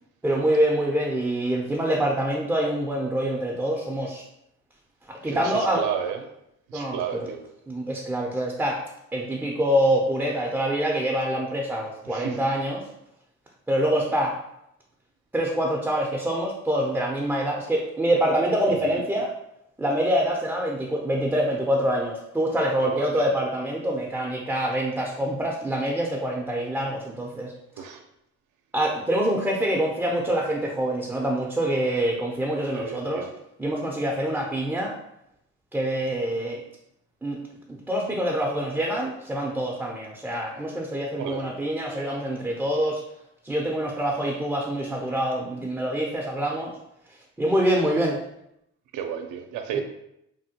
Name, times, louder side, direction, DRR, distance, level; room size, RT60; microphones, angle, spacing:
voice 1, 0.2-4.2 5.1-5.9 6.7-7.3 7.7-8.8 9.1-12.8 13.7-14.4 15.3-19.3 19.8-27.8 28.7-33.3 33.6-34.9 35.7-36.6 37.2-37.4 37.7-43.0 43.4-46.7 47.4-48.2 49.7-49.8, right 1 dB, 5° right, -1 dB, 0.4 m, -25 dB
voice 2, 5.2-6.2 6.7-7.4 12.1-12.4 18.7-19.0 22.8-23.2 27.8-28.0 32.8-33.3 41.2-41.5 48.9-49.8, right 8 dB, 80° right, 5 dB, 0.5 m, -32 dB
3.3 x 2.1 x 2.8 m, 0.80 s
cardioid pair, 90°, 30 cm